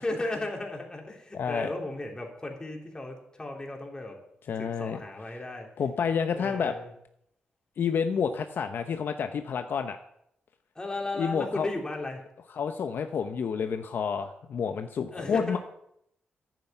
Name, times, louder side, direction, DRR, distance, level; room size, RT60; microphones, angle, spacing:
voice 1, 0.0-4.2 4.6-5.7 6.4-6.9 10.8-12.2 15.1-15.6, left 2 dB, 20° left, 1 dB, 3.5 m, -35 dB
voice 2, 1.3-1.7 4.5-5.0 5.8-6.7 7.8-10.0 11.2-11.7 12.5-15.6, left 6 dB, 65° left, 7 dB, 0.9 m, -29 dB
10.5 x 9.2 x 9.2 m, 0.74 s
cardioid pair, 95°, 4 cm